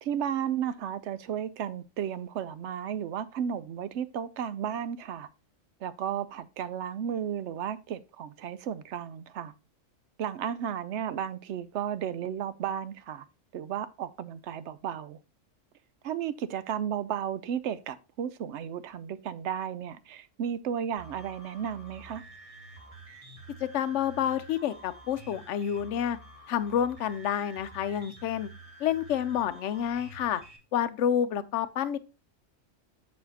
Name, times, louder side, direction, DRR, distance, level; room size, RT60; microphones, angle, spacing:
voice 1, 0.0-5.3 5.8-9.5 10.2-13.2 13.5-15.2 16.0-22.2, right 9 dB, 65° right, 0.8 m, -34 dB
sound 1, 21.0-30.6, right 2 dB, 30° right, 1.1 m, -49 dB
voice 2, 23.6-26.2 26.5-28.5 28.8-30.4 30.7-32.0, left 9 dB, 70° left, 0.9 m, -29 dB
6.9 x 6.3 x 2.8 m
omnidirectional pair, 1.4 m